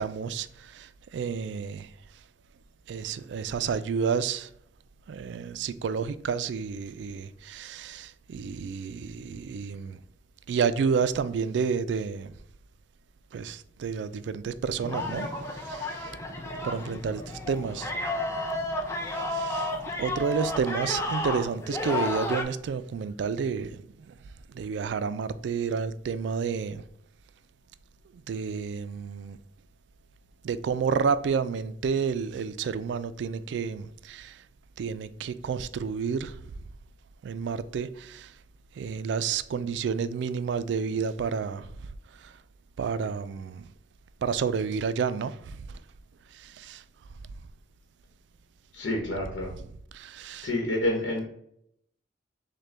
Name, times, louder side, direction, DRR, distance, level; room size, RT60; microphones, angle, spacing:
voice 1, 0.0-1.9 2.9-4.5 5.1-10.0 10.5-12.3 13.3-16.2 16.6-17.9 19.1-19.7 20.0-24.1 24.5-26.8 28.3-29.4 30.4-34.4 34.8-36.4 37.2-38.3 38.8-41.9 42.2-42.3 42.8-43.7 44.2-45.8 46.3-46.8 49.9-50.5, right 6 dB, 70° right, 0.3 m, -30 dB
sound 1, 14.8-22.4, left 2 dB, 15° left, 0.6 m, -32 dB
voice 2, 48.7-49.5 50.4-51.2, left 1 dB, 90° left, 1.0 m, -28 dB
6.3 x 2.2 x 3.3 m
head